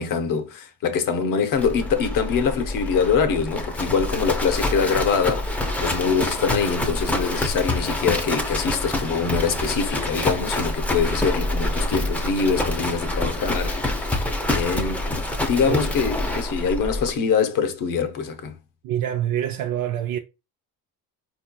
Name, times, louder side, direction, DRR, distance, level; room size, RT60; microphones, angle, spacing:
voice 1, 0.0-14.2 14.5-18.6, left 6 dB, 60° left, 0.8 m, -24 dB
Livestock farm animals working animals, 1.6-17.1, left 1 dB, 5° left, 0.5 m, -26 dB
voice 2, 18.8-20.2, right 11 dB, 65° right, 0.5 m, -25 dB
4.3 x 2.8 x 2.2 m
cardioid pair, 115°, 37 cm